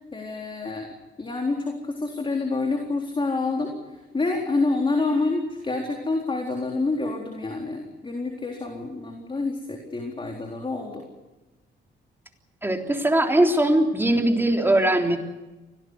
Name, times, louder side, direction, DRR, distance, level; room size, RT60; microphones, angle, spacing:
voice 1, 0.1-0.9 1.2-11.0, left 3 dB, 25° left, 1 dB, 4.0 m, -27 dB
voice 2, 12.6-15.2, right 1 dB, 10° right, 2 dB, 3.6 m, -20 dB
24.5 x 18.0 x 8.1 m, 1.1 s
cardioid pair, 90°, 20 cm